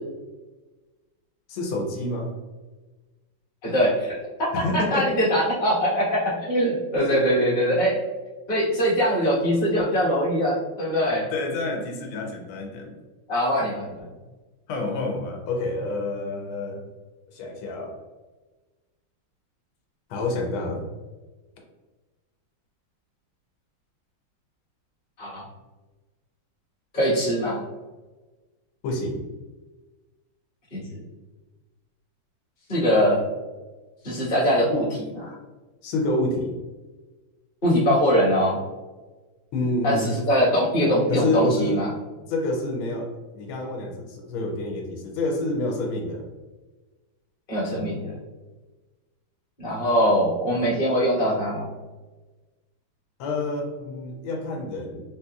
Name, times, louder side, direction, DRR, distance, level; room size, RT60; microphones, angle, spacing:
voice 1, 1.5-2.3 4.5-5.2 7.0-7.2 11.3-12.9 14.7-16.8 17.3-18.0 20.1-20.8 28.8-29.2 35.8-36.5 39.5-40.1 41.1-41.8 42.3-46.3 53.2-55.0, left 2 dB, 85° left, 1 dB, 1.5 m, -28 dB
voice 2, 3.6-4.2 4.7-8.0 8.5-11.2 13.3-13.9 25.2-25.4 26.9-27.6 30.7-31.0 32.7-33.2 34.0-35.4 37.6-38.6 39.8-41.9 47.5-48.2 49.6-51.7, equal, 25° left, -8 dB, 1.0 m, -22 dB
3.7 x 2.8 x 2.3 m, 1.2 s
omnidirectional pair, 2.3 m